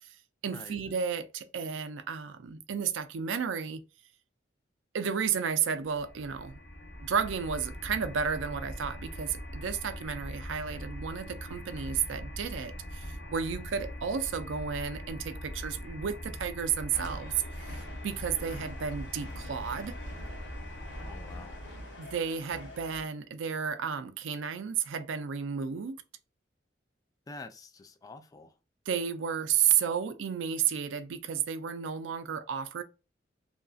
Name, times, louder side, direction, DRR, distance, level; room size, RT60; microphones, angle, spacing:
voice 1, 0.4-3.8 4.9-6.6 7.0-17.3 17.7-20.0 22.0-26.0 28.9-32.8, right 7 dB, 85° right, 0.4 m, -32 dB
sound 1, 5.8-22.0, equal, 75° left, 0.8 m, -42 dB
sound 2, 16.9-23.1, left 1 dB, 90° left, 1.4 m, -46 dB
voice 2, 21.0-21.6 27.3-28.5, left 3 dB, 20° left, 0.3 m, -47 dB
2.8 x 2.6 x 2.3 m
head